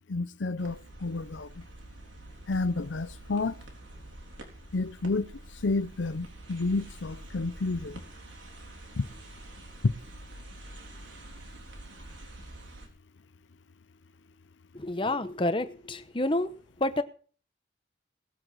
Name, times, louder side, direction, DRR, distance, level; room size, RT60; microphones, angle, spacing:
voice 1, 0.1-1.6 2.5-3.6 4.7-5.3 5.6-8.0 9.0-9.1 9.8-9.9, left 3 dB, 80° left, 0.6 m, -30 dB
sound 1, 0.6-12.9, right 1 dB, 90° right, 3.8 m, -47 dB
voice 2, 14.7-16.5 16.8-17.0, left 1 dB, 25° left, 0.9 m, -29 dB
18.5 x 7.9 x 6.3 m
head